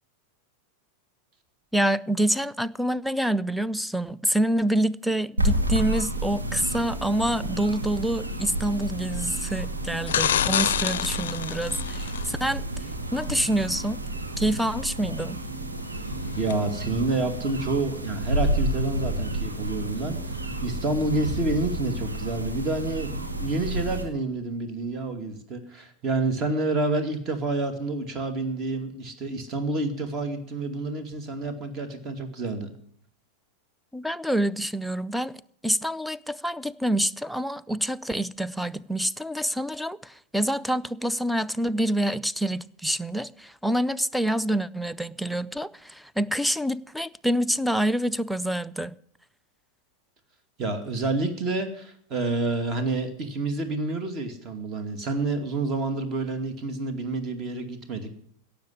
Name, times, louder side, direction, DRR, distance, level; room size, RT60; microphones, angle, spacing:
voice 1, 1.7-12.6 13.1-14.0 14.4-15.4 33.9-35.3 35.6-48.9, right 1 dB, ahead, 0.5 m, -27 dB
sound 1, 5.4-24.0, right 1 dB, 80° right, 2.1 m, -30 dB
sound 2, 10.1-12.3 16.5-16.6, left 10 dB, 60° left, 0.5 m, -26 dB
voice 2, 16.4-32.7 50.6-58.1, right 2 dB, 30° right, 2.4 m, -28 dB
17.0 x 7.1 x 9.8 m
figure-of-eight pair, 90°, 0 cm